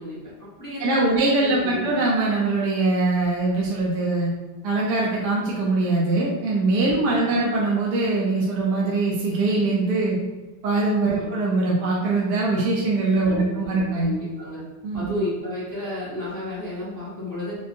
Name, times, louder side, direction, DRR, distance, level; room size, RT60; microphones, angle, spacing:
voice 1, 0.0-2.0 6.8-7.3 11.1-11.3 13.1-14.6 14.9-17.6, left 1 dB, 20° left, -9 dB, 0.6 m, -32 dB
voice 2, 0.8-4.3 4.6-10.2 10.6-14.1 14.8-15.2, right 3 dB, 70° right, -4 dB, 1.2 m, -22 dB
5.0 x 2.0 x 2.6 m, 1.1 s
omnidirectional pair, 1.9 m